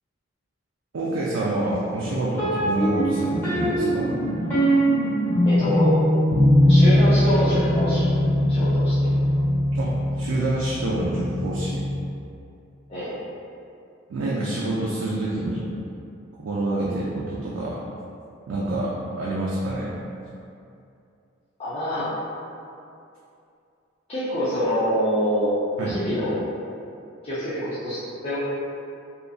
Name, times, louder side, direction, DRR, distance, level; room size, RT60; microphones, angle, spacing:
voice 1, 0.9-4.1 9.7-11.8 14.1-15.7 16.4-17.8 18.5-20.0 25.8-26.0, right 2 dB, 70° right, -6 dB, 0.4 m, -27 dB
sound 1, 2.4-12.1, equal, 10° left, 1.0 m, -21 dB
voice 2, 5.4-6.0 6.7-8.1 8.5-9.2 12.9-13.2 21.6-22.1 24.1-26.4 27.2-28.4, equal, 30° left, -13 dB, 0.5 m, -26 dB
2.7 x 2.5 x 2.3 m, 2.6 s
head